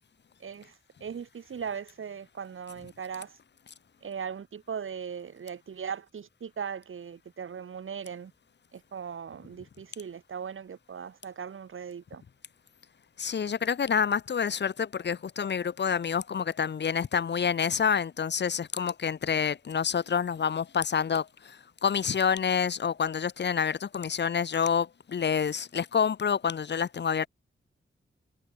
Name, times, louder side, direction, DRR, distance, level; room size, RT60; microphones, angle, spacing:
voice 1, 0.4-3.4 4.0-8.3 8.7-12.2, right 7 dB, 75° right, 1.6 m, -39 dB
voice 2, 13.2-21.6 21.8-27.3, left 7 dB, 55° left, 0.7 m, -28 dB
wide cardioid pair, 110°, 21 cm